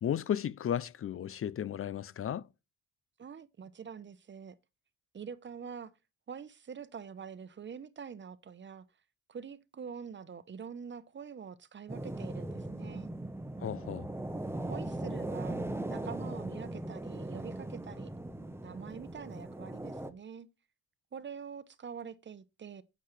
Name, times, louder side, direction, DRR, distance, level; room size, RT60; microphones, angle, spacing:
voice 1, 0.0-2.4 13.6-14.1, left 9 dB, 45° left, 0.6 m, -34 dB
voice 2, 3.2-4.6 5.1-5.9 6.3-8.8 9.3-13.1 14.7-15.6 15.9-18.1 18.6-20.5 21.1-22.8, right 6 dB, 40° right, 0.9 m, -45 dB
sound 1, 11.9-20.1, right 1 dB, 10° right, 1.1 m, -39 dB
9.6 x 8.4 x 3.3 m
cardioid pair, 90°, 30 cm